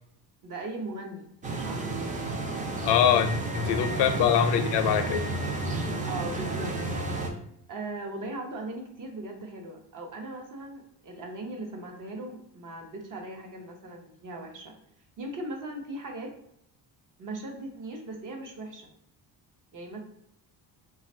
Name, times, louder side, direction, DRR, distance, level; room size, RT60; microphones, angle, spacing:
voice 1, 0.4-1.3 1.6-2.1 4.2-4.3 6.0-6.7 7.7-14.8 15.2-16.3 17.2-18.9 19.7-20.0, right 2 dB, 45° right, 2 dB, 0.8 m, -38 dB
sound 1, 1.4-7.3, right 2 dB, 20° right, 0.4 m, -31 dB
voice 2, 2.8-5.2, left 9 dB, 70° left, 8 dB, 0.5 m, -24 dB
3.2 x 2.4 x 4.2 m, 0.74 s
cardioid pair, 130°, 43 cm